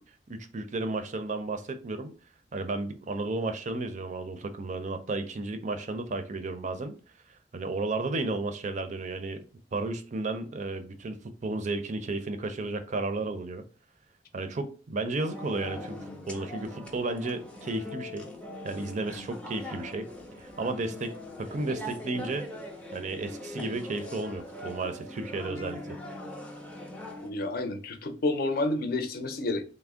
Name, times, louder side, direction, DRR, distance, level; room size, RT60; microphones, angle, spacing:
voice 1, 0.3-2.1 2.5-6.9 7.5-9.4 9.7-13.6 14.3-15.9 16.3-18.3 18.6-20.1 20.4-22.5 22.9-26.0, right 2 dB, 45° right, 0.5 m, -33 dB
sound 1, 15.2-27.3, left 1 dB, 5° left, 0.5 m, -41 dB
voice 2, 27.2-29.6, left 2 dB, 60° left, 0.5 m, -29 dB
3.4 x 2.0 x 3.5 m
head